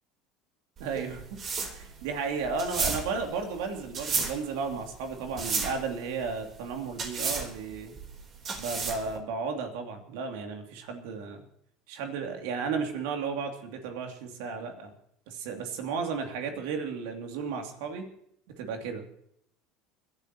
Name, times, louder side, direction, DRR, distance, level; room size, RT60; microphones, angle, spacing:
sound 1, 0.8-9.2, right 4 dB, 40° right, 3.5 m, -33 dB
voice 1, 0.8-1.4 1.7-8.0 8.6-11.4 11.9-14.9 15.3-18.1 18.6-19.0, right 5 dB, 70° right, 4 dB, 2.7 m, -34 dB
29.5 x 11.5 x 3.0 m, 0.71 s
hypercardioid pair, 75°, 0 cm